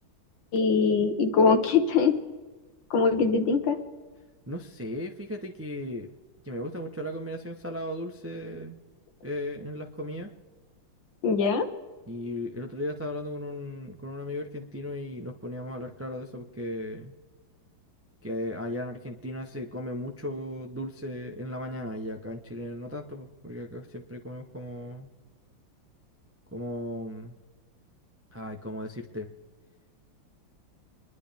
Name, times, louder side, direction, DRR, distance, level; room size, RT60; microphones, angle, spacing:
voice 1, 0.5-2.2 2.9-3.8 11.2-11.7, left 5 dB, 70° left, 7 dB, 1.9 m, -22 dB
voice 2, 4.5-6.1 6.4-8.8 9.2-10.3 12.1-17.1 18.2-25.1 26.5-27.3 28.3-29.3, left 1 dB, 20° right, 3 dB, 0.4 m, -36 dB
26.5 x 11.0 x 3.5 m, 1.3 s
omnidirectional pair, 2.2 m